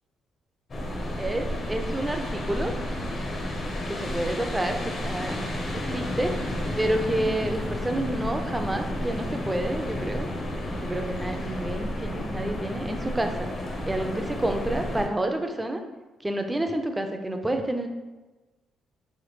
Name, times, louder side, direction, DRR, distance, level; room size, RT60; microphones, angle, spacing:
sound 1, 0.7-15.1, left 1 dB, 45° left, 0.6 m, -31 dB
voice 1, 1.2-2.7 3.9-6.4 6.8-10.3 10.8-13.5 13.9-15.8 16.2-17.9, right 1 dB, 15° right, 5 dB, 0.3 m, -29 dB
3.1 x 2.1 x 3.2 m, 1.2 s
cardioid pair, 90°, 0 cm